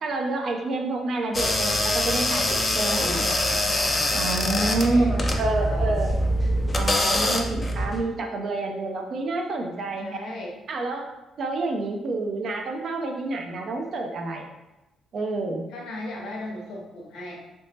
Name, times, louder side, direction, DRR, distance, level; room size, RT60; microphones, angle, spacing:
voice 1, 0.0-3.2 3.5-3.6 4.1-6.2 6.7-10.3 10.7-11.1 11.4-14.5 15.1-15.6, right 2 dB, 60° right, 3 dB, 0.6 m, -28 dB
sound 1, 1.3-8.0, left 1 dB, 25° left, 0.5 m, -24 dB
voice 2, 2.8-3.3 4.5-6.0 10.0-10.5 15.7-17.4, left 2 dB, 85° left, -1 dB, 0.8 m, -36 dB
3.4 x 3.0 x 2.8 m, 0.99 s
cardioid pair, 90°, 0 cm